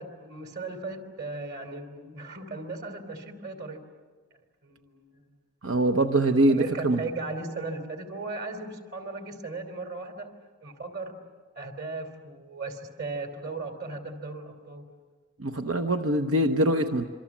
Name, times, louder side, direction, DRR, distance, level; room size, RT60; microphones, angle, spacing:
voice 1, 0.0-3.8 4.6-5.2 6.5-10.3 10.6-11.1 11.5-14.9, right 3 dB, 55° right, 6 dB, 3.2 m, -37 dB
voice 2, 5.6-7.0 15.4-17.0, right 1 dB, 85° right, 5 dB, 1.0 m, -23 dB
27.0 x 25.0 x 7.3 m, 1.5 s
head